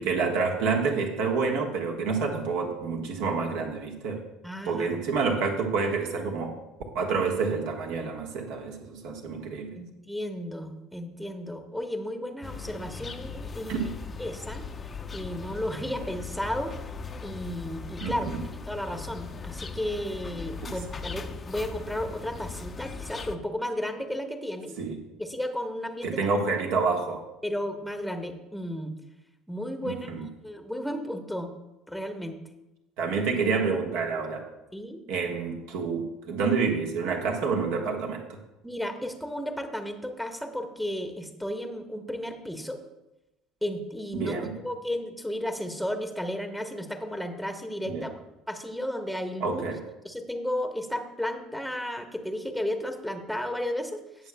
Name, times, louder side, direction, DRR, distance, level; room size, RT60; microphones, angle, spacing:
voice 1, 0.0-4.2 4.6-6.6 6.9-9.8 13.7-13.9 18.0-18.4 20.6-20.8 24.8-25.0 26.0-27.2 29.8-30.3 33.0-34.4 35.1-38.2 44.1-44.6 47.9-48.0 49.4-49.8, right 4 dB, 60° right, 1 dB, 1.5 m, -28 dB
voice 2, 4.4-5.0 9.8-13.9 14.2-14.6 15.1-16.7 17.2-18.3 18.7-24.8 25.2-26.2 27.4-28.9 29.5-30.1 30.4-31.5 31.9-32.4 34.7-35.0 38.6-42.8 43.6-48.2 48.5-49.6 50.0-54.0, left 1 dB, ahead, 6 dB, 1.1 m, -33 dB
sound 1, 12.4-23.4, left 5 dB, 30° left, 0.7 m, -39 dB
18.5 x 6.9 x 2.3 m, 0.97 s
figure-of-eight pair, 60°, 0 cm